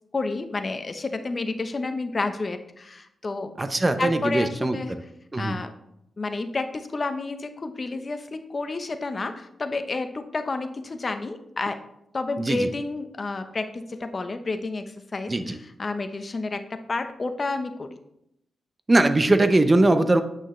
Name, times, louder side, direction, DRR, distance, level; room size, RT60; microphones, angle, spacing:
voice 1, 0.1-3.5 4.0-5.0 5.4-5.7 6.2-11.8 12.1-17.9, left 3 dB, 35° left, 8 dB, 0.8 m, -30 dB
voice 2, 3.6-5.0 5.3-5.6 12.4-12.7 15.3-15.6 18.9-20.2, right 2 dB, 25° right, 9 dB, 0.7 m, -21 dB
8.8 x 6.3 x 3.2 m, 0.78 s
cardioid pair, 85°, 0 cm